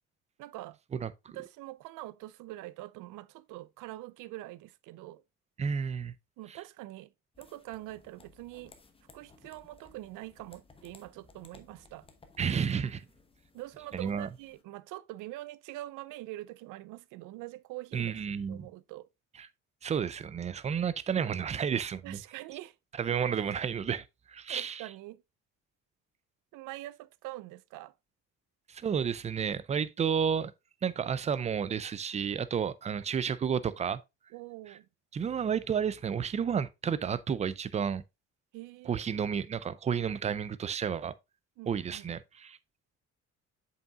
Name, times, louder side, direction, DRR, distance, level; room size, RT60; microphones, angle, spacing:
voice 1, 0.4-0.8 1.3-5.2 6.4-7.1 7.4-8.7 9.1-12.1 13.5-18.2 18.5-19.1 22.0-22.8 24.5-25.2 26.5-27.9 34.3-34.9 38.5-39.2 41.6-42.1, right 17 dB, 85° right, 0.5 m, -44 dB
voice 2, 0.9-1.4 5.6-6.1 6.5-6.6 12.4-13.0 13.9-14.3 17.9-18.7 19.8-22.2 23.0-24.9 28.7-30.5 30.8-34.0 35.1-38.0 38.9-41.1 41.7-42.6, right 7 dB, 25° right, 0.4 m, -31 dB
sound 1, 7.3-14.6, left 3 dB, 20° left, 1.0 m, -58 dB
7.3 x 5.6 x 2.3 m
cardioid pair, 140°, 30 cm